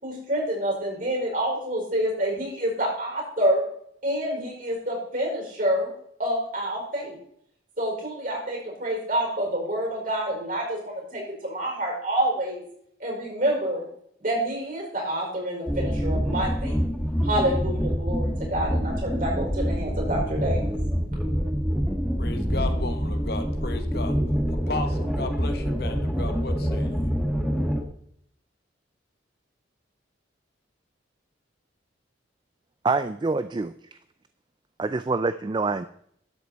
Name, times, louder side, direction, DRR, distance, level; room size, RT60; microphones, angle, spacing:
voice 1, 0.0-3.6 4.0-5.9 6.2-7.2 7.8-12.6 13.0-13.8 14.2-16.8 17.2-20.6, right 1 dB, 45° right, -1 dB, 4.9 m, -27 dB
sound 1, 15.7-27.8, equal, ahead, 1.3 m, -26 dB
voice 2, 22.2-24.2 24.5-27.1, left 3 dB, 55° left, 8 dB, 1.2 m, -35 dB
voice 3, 32.8-33.7 34.8-35.8, right 3 dB, 25° right, 12 dB, 0.3 m, -25 dB
12.5 x 8.0 x 4.2 m, 0.67 s
head